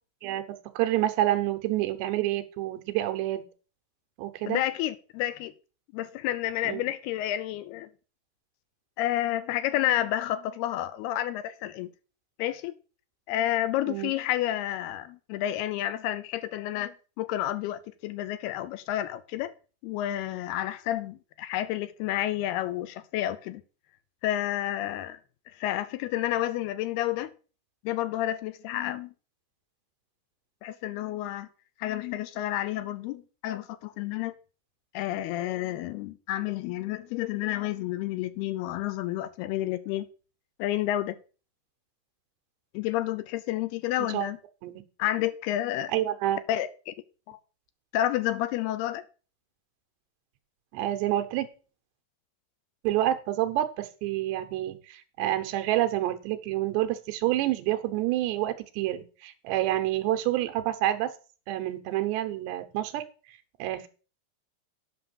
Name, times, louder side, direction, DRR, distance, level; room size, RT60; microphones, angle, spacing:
voice 1, 0.2-3.4 4.2-4.6 6.6-6.8 13.9-14.1 44.0-44.3 44.6-44.7 45.9-46.4 50.7-51.5 52.8-61.1 61.5-63.0 63.6-63.9, right 14 dB, 85° right, 3.1 m, -28 dB
voice 2, 4.5-5.5 5.9-7.9 9.0-11.9 12.4-12.8 13.3-19.5 19.8-23.6 24.2-25.2 25.5-27.3 27.8-29.1 30.6-31.5 31.8-34.3 34.9-40.1 40.6-41.2 42.7-44.4 45.0-45.9 46.5-46.9 47.3-47.4 47.9-49.0, left 13 dB, 80° left, 2.5 m, -30 dB
9.4 x 6.0 x 6.9 m
omnidirectional pair, 4.8 m